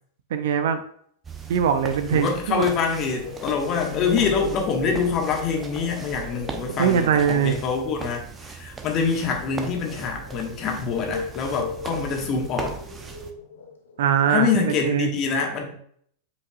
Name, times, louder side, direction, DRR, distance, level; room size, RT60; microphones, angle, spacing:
voice 1, 0.3-0.8 1.5-2.7 6.8-7.6 14.0-14.5 14.8-15.1, right 8 dB, 55° right, 9 dB, 0.6 m, -21 dB
sound 1, 1.2-13.3, right 5 dB, 15° right, 0.8 m, -38 dB
voice 2, 2.1-12.7 14.3-15.8, left 5 dB, 35° left, 1 dB, 1.6 m, -25 dB
sound 2, 2.8-14.1, left 6 dB, 65° left, 1.1 m, -39 dB
8.2 x 5.1 x 2.5 m, 0.63 s
figure-of-eight pair, 90°, 0 cm